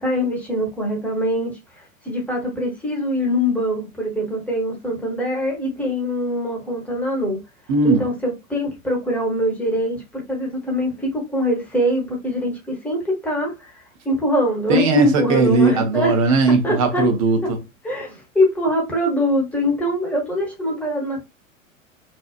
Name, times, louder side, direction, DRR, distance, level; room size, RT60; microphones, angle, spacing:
voice 1, 0.0-7.4 7.8-13.7 14.0-16.2 16.6-17.0 17.8-21.2, equal, 5° left, 0.7 m, -23 dB
voice 2, 7.7-8.1 14.7-17.6, right 3 dB, 30° right, 0.4 m, -18 dB
2.8 x 2.0 x 2.3 m
figure-of-eight pair, 95°, 40 cm